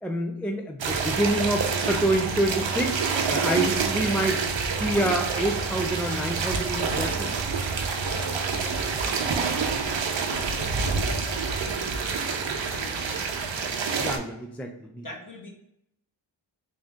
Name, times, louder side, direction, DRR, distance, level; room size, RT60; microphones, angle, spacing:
voice 1, 0.0-4.4 4.8-7.3 14.0-15.1, right 1 dB, 5° left, 3 dB, 0.3 m, -27 dB
sound 1, 0.8-14.2, right 5 dB, 75° right, 0.7 m, -27 dB
voice 2, 7.9-13.4 15.0-15.5, left 1 dB, 45° left, 1 dB, 1.1 m, -43 dB
3.7 x 2.7 x 3.4 m, 0.77 s
wide cardioid pair, 65°, 46 cm